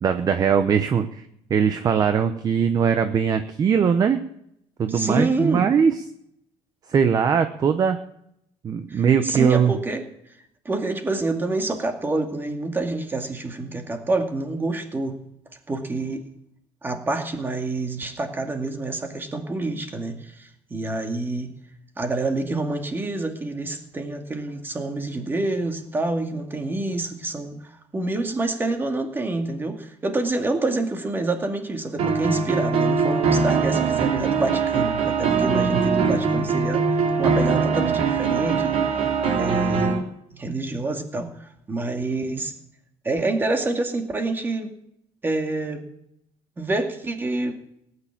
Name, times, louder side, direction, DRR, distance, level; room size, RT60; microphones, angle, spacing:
voice 1, 0.0-4.2 4.8-6.0 6.9-8.0 8.6-9.7, right 7 dB, 35° right, 9 dB, 0.9 m, -20 dB
voice 2, 4.9-5.7 8.9-10.1 10.6-15.2 15.7-16.3 16.8-21.5 22.0-38.9 39.3-40.0 40.3-42.5 43.0-44.7 45.2-45.9 46.6-47.6, right 2 dB, 20° right, 4 dB, 2.3 m, -27 dB
sound 1, 32.0-40.0, right 5 dB, 65° right, 3.3 m, -22 dB
18.0 x 9.7 x 7.3 m, 0.75 s
cardioid pair, 145°, 12 cm